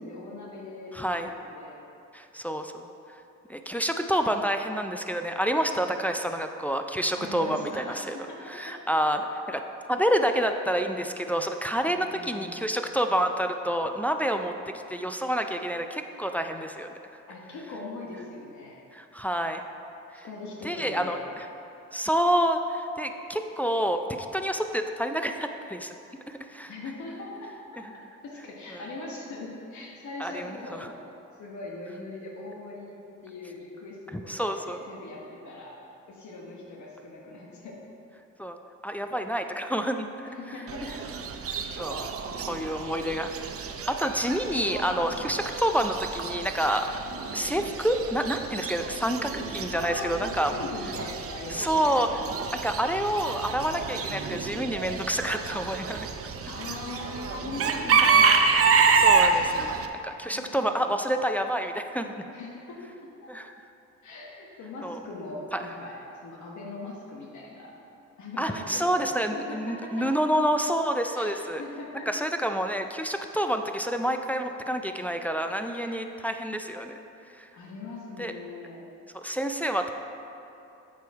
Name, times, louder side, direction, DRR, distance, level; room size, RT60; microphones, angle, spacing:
voice 1, 0.0-1.8 7.2-8.4 8.7-8.8 9.1-9.2 11.9-12.5 17.3-18.8 20.2-21.2 26.7-27.8 28.2-30.9 31.4-35.7 36.1-37.8 40.4-41.0 44.2-44.3 49.7-51.8 56.5-58.4 60.2-61.0 62.3-62.8 63.2-63.3 64.0-67.7 68.2-69.8 71.1-71.3 71.6-72.1 75.7-76.0 77.5-78.8, left 2 dB, 70° left, -2 dB, 1.2 m, -40 dB
voice 2, 0.9-1.3 2.1-2.9 3.5-8.2 8.5-9.6 9.9-16.9 18.9-19.6 20.1-20.3 20.6-21.2 21.9-25.9 26.3-26.7 28.7-28.8 30.2-30.9 34.1-34.8 38.4-38.6 38.8-40.3 40.8-40.9 41.5-46.9 47.3-50.5 51.5-52.3 52.6-56.1 58.1-58.2 58.6-62.1 63.3-63.5 64.8-65.0 65.5-65.6 68.4-71.6 72.1-77.0 77.4-77.5 78.2-78.3 79.1-79.9, equal, 5° left, 5 dB, 0.3 m, -28 dB
Chicken rooster / Bird, 40.7-59.9, right 5 dB, 50° right, 0.6 m, -28 dB
7.9 x 5.2 x 4.6 m, 2.8 s
cardioid pair, 90°, 30 cm